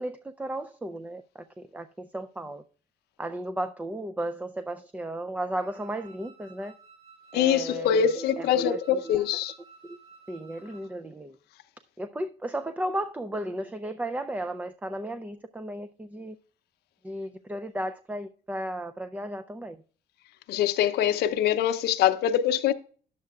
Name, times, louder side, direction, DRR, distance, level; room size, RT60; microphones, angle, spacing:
voice 1, 0.0-2.6 3.2-6.7 7.3-9.1 9.9-10.0 10.3-11.4 12.0-16.4 17.0-19.8, right 1 dB, 10° right, 0.4 m, -34 dB
Wind instrument woodwind instrument, 5.6-11.0, right 4 dB, 75° right, 2.7 m, -54 dB
voice 2, 7.3-9.5 20.5-22.7, left 9 dB, 75° left, 0.6 m, -24 dB
11.0 x 7.5 x 2.3 m
cardioid pair, 110°, 17 cm